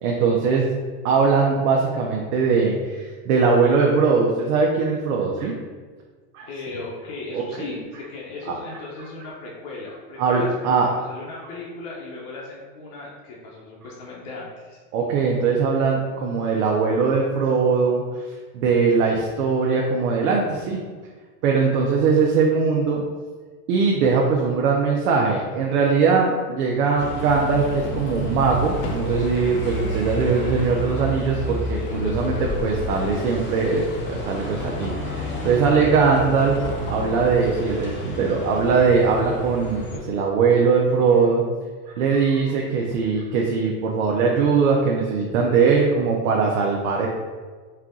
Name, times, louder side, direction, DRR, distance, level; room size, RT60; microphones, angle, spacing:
voice 1, 0.0-0.8 1.0-5.5 6.3-6.5 7.3-7.4 8.5-8.6 10.2-10.9 14.9-18.0 18.5-20.8 21.4-23.0 23.7-36.6 36.9-41.4 41.9-47.1, right 5 dB, 75° right, -1 dB, 0.7 m, -21 dB
voice 2, 6.5-14.8 31.3-32.6, left 3 dB, 50° left, -5 dB, 1.0 m, -36 dB
Bus, 27.0-40.0, equal, 25° left, 0.7 m, -30 dB
sound 1, 27.9-34.0, left 4 dB, 70° left, 0.7 m, -39 dB
4.4 x 2.4 x 3.7 m, 1.5 s
supercardioid pair, 135°, 44 cm